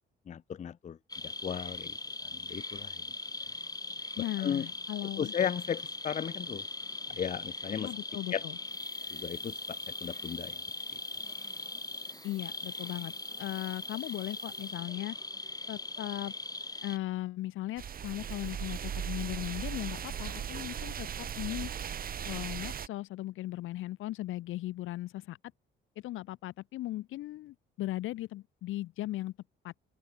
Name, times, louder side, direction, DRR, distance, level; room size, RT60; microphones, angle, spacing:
voice 1, 0.3-1.0 1.2-1.9 2.5-2.9 4.4-4.7 5.2-6.6 7.1-7.9 8.3-8.4 9.1-10.6, left 8 dB, 35° left, 0.5 m, -35 dB
sound 1, 1.1-17.0, left 2 dB, 20° left, 6.1 m, -40 dB
voice 2, 4.2-5.3 7.8-8.6 12.2-15.2 15.7-16.3 16.8-21.7 22.3-25.4 26.0-29.3 29.6-29.7, left 16 dB, 90° left, 2.2 m, -38 dB
sound 2, 8.6-15.0, right 15 dB, 90° right, 4.0 m, -56 dB
sound 3, 17.8-22.9, right 8 dB, 45° right, 0.9 m, -38 dB
cardioid pair, 90°, 20 cm